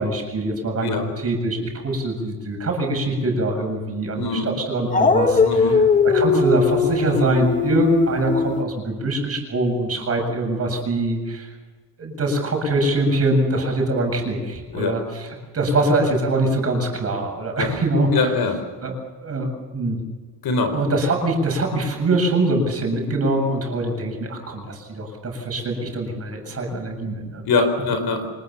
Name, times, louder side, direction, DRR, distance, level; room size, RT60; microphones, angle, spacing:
voice 1, 0.0-11.5 12.0-15.3 15.5-18.4 18.8-18.9 19.2-20.0 20.7-27.4, right 1 dB, 30° right, 2 dB, 7.7 m, -23 dB
voice 2, 4.2-4.5 5.4-5.8 14.7-14.9 17.6-17.7 18.1-18.6 20.4-20.7 27.5-28.3, left 4 dB, 50° left, 7 dB, 4.6 m, -22 dB
Dog, 4.9-8.6, left 4 dB, 15° left, 1.5 m, -19 dB
26.0 x 20.5 x 7.2 m, 1.4 s
cardioid pair, 125°, 48 cm